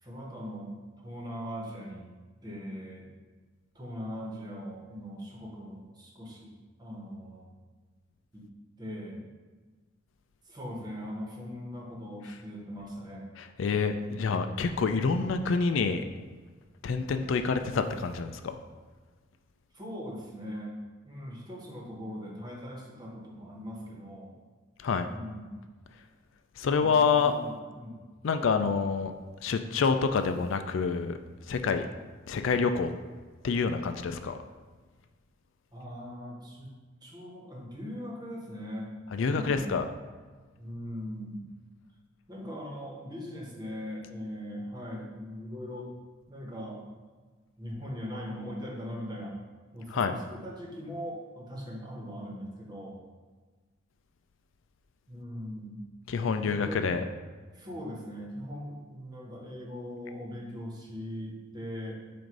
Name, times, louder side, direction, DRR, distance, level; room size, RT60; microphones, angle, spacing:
voice 1, 0.0-2.1 2.4-3.1 3.7-6.5 6.8-7.5 8.3-8.5 8.8-9.2 10.4-13.3 19.7-20.7 21.0-24.3 25.0-25.6 26.7-28.0 35.7-36.7 37.0-38.9 39.2-39.8 40.6-41.5 42.3-45.9 46.3-46.9 47.6-49.4 49.7-53.0 55.1-55.8 56.4-56.9 57.5-62.1, equal, 20° right, -3 dB, 1.2 m, -40 dB
voice 2, 13.6-16.0 16.8-18.6 24.8-25.1 26.6-27.3 28.2-29.1 29.4-31.2 31.5-31.9 32.3-32.9 33.4-34.4 39.1-39.9 49.9-50.1 56.1-57.0, left 5 dB, 70° left, 8 dB, 0.4 m, -27 dB
7.6 x 2.6 x 5.3 m, 1.4 s
head